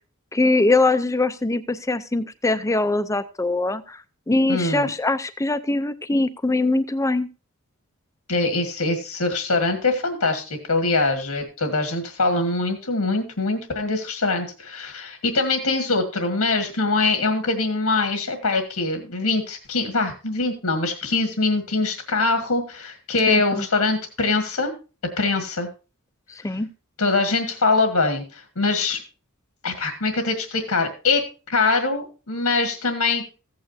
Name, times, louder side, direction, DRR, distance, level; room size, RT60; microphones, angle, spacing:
voice 1, 0.3-4.0 4.3-7.3 23.3-23.6 26.4-26.7, left 2 dB, 15° left, 12 dB, 0.5 m, -22 dB
voice 2, 4.5-4.9 8.3-24.7 25.2-25.7 27.0-29.0 29.6-31.2 31.5-33.2, left 3 dB, 85° left, 5 dB, 1.8 m, -23 dB
15.0 x 8.8 x 2.7 m, 0.33 s
head